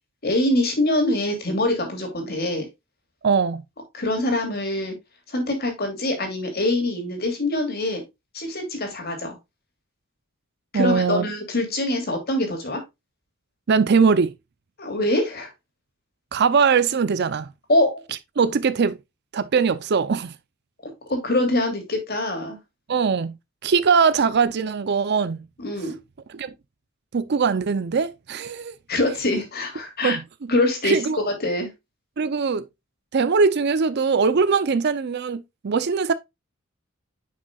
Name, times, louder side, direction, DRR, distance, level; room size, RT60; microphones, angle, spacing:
voice 1, 0.2-2.7 3.9-5.0 5.3-8.0 8.3-9.4 10.7-12.8 14.8-15.5 17.7-18.0 21.1-22.6 25.6-25.9 28.9-30.2 30.5-31.7, left 1 dB, 50° left, 2.8 m, -24 dB
voice 2, 3.2-3.6 10.7-11.3 13.7-14.3 16.3-17.5 18.4-19.0 19.3-20.3 22.9-23.4 23.6-25.4 26.3-26.5 27.1-28.7 30.0-30.2 30.8-31.2 32.2-32.6 33.1-36.1, right 5 dB, 55° right, 0.5 m, -21 dB
9.7 x 6.2 x 2.3 m
head